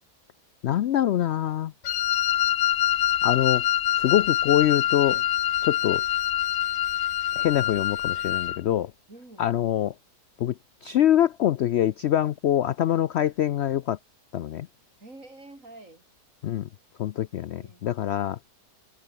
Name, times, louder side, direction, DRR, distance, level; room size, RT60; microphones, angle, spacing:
voice 1, 0.6-1.7 3.2-3.6 4.0-5.2 5.6-6.0 7.4-8.9 9.4-9.9 10.4-10.5 10.8-14.0 14.3-14.7 16.4-16.7 17.0-18.4, left 11 dB, 85° left, 0.5 m, -24 dB
Wind instrument woodwind instrument, 1.8-8.6, left 12 dB, 60° left, 1.0 m, -25 dB
voice 2, 9.1-9.8 15.0-16.0 17.6-17.9, right 2 dB, 50° right, 5.9 m, -48 dB
omnidirectional pair, 1.7 m